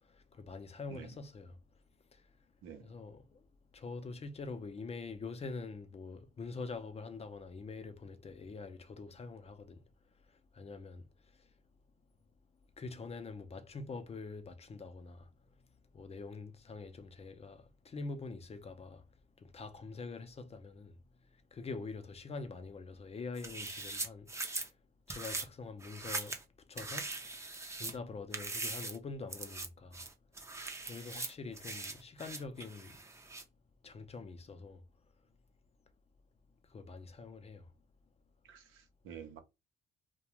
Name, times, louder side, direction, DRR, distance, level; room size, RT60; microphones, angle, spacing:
voice 1, 0.3-1.6 2.8-3.4 3.7-9.8 10.5-11.1 12.8-15.3 15.9-19.0 19.4-20.9 21.5-24.3 25.1-26.4 26.7-27.2 27.8-30.0 30.9-33.0 33.8-34.8 36.7-37.7, left 4 dB, 30° left, 0.5 m, -45 dB
voice 2, 2.6-2.9 38.4-39.4, right 8 dB, 85° right, 0.7 m, -50 dB
sound 1, 23.4-24.7 25.1-25.5 25.8-26.4 26.8-28.0 28.3-29.0 29.3-29.7 29.9-33.4, right 3 dB, 15° right, 0.5 m, -41 dB
2.4 x 2.1 x 2.9 m
cardioid pair, 90°, 20 cm